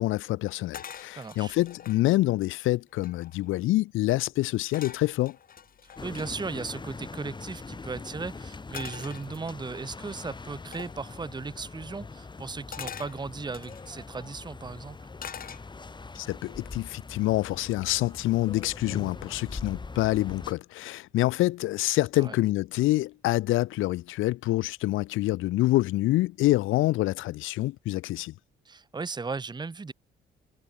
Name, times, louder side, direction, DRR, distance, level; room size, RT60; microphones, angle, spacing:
voice 1, 0.0-5.4 16.1-28.3, left 17 dB, 85° left, 0.6 m, -26 dB
sound 1, 0.7-2.0 2.6-2.7 2.9-3.5 4.7-6.3 8.7-9.8 10.7-11.0 12.7-13.9 15.2-16.0 16.5-16.8, left 8 dB, 45° left, 1.0 m, -43 dB
voice 2, 1.2-1.6 5.8-15.1 22.2-22.4 28.6-29.9, right 4 dB, 20° right, 1.1 m, -37 dB
sound 2, 6.0-20.5, left 4 dB, 20° left, 1.5 m, -42 dB
cardioid pair, 90°, 20 cm